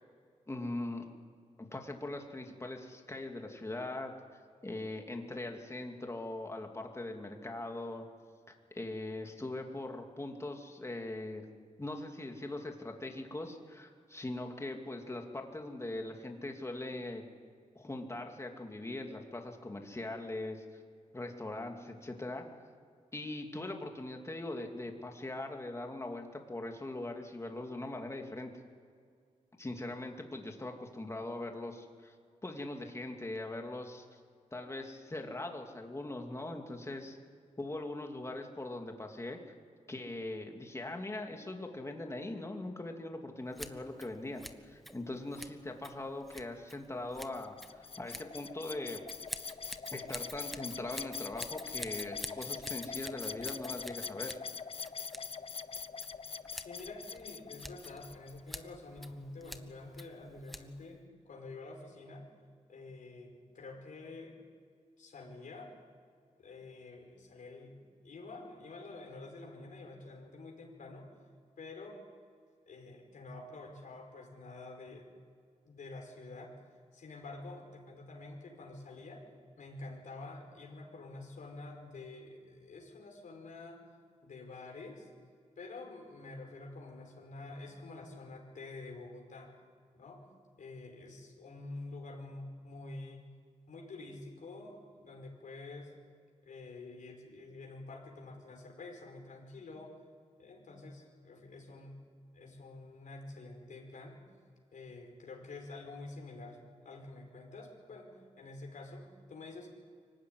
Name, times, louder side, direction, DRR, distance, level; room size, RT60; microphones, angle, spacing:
voice 1, 0.5-1.1 1.6-4.1 4.6-8.0 8.5-11.5 11.8-17.2 17.7-20.6 21.1-22.4 23.1-28.5 29.6-32.1 32.4-34.2 34.5-37.2 37.6-39.5 39.9-49.0 49.9-54.4, left 2 dB, 20° left, 3 dB, 2.6 m, -41 dB
Scissors, 43.5-61.0, equal, ahead, 1.2 m, -50 dB
sound 1, 47.3-58.4, left 5 dB, 45° left, 0.7 m, -43 dB
voice 2, 56.5-62.3 62.7-64.3 65.0-65.7 66.4-71.1 71.6-72.0 72.7-75.1 75.7-76.5 76.9-79.3 79.6-83.8 84.2-85.1 85.6-89.5 90.0-90.3 90.6-93.3 93.7-95.9 96.4-99.9 100.4-102.0 102.3-104.2 104.7-109.7, left 2 dB, 80° left, 0 dB, 5.3 m, -48 dB
24.5 x 15.5 x 9.7 m, 2.2 s
wide cardioid pair, 90°, 13 cm